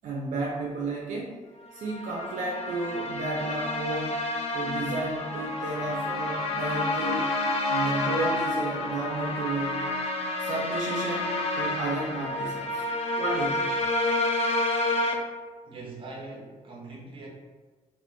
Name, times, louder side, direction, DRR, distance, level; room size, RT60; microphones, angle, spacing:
voice 1, 0.0-1.3 1.7-4.2 4.5-7.3 7.7-9.8 10.4-12.8 13.2-13.7, right 2 dB, 70° right, -3 dB, 0.5 m, -32 dB
sound 1, 1.8-15.1, left 2 dB, 45° left, 0.5 m, -29 dB
voice 2, 15.7-17.3, right 3 dB, 40° right, -2 dB, 0.8 m, -42 dB
2.5 x 2.4 x 3.5 m, 1.4 s
cardioid pair, 105°, 14 cm